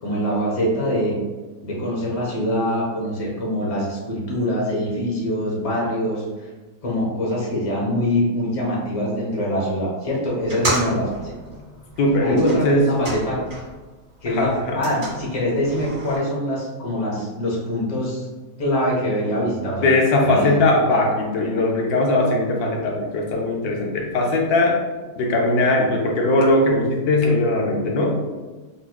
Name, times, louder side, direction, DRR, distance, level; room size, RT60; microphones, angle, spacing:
voice 1, 0.0-1.2 1.6-6.5 6.8-11.4 12.2-13.4 14.2-18.3 18.6-19.9 20.2-20.6, equal, 30° left, -5 dB, 0.8 m, -24 dB
sound 1, 10.4-13.8 14.2-16.2, right 1 dB, 40° right, 1.7 m, -31 dB
voice 2, 12.0-12.9 14.3-14.8 19.8-24.8 25.2-28.2, left 2 dB, 70° left, 0 dB, 1.0 m, -20 dB
4.0 x 3.0 x 2.3 m, 1.3 s
omnidirectional pair, 1.8 m